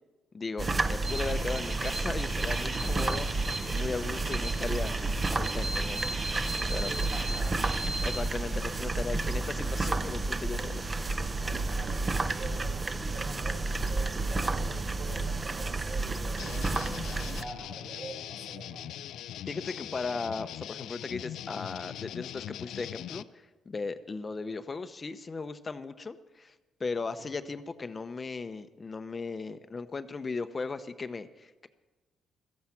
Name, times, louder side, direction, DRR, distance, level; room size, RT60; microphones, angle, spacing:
voice 1, 0.3-4.9 5.3-6.0 6.7-6.9 8.0-11.6 19.5-26.5 26.8-31.7, left 4 dB, 30° left, 11 dB, 0.8 m, -37 dB
sound 1, 0.6-17.4, right 3 dB, 25° right, 0.7 m, -31 dB
sound 2, 1.0-8.2, right 2 dB, 45° right, 3.8 m, -37 dB
voice 2, 6.7-8.3 11.4-19.0 27.2-27.3, right 2 dB, 65° right, 1 dB, 5.2 m, -45 dB
sound 3, 16.4-23.2, left 11 dB, 80° left, 0.5 m, -41 dB
16.0 x 14.0 x 5.9 m, 1.2 s
cardioid pair, 90°, 0 cm